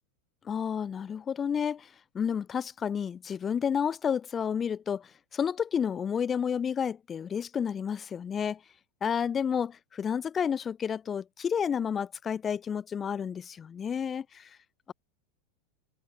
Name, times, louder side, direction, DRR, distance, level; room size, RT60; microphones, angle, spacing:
voice 1, 0.5-1.9 2.1-8.6 9.0-14.5, left 7 dB, 25° left, 5.9 m, -31 dB
supercardioid pair, 120°, 0 cm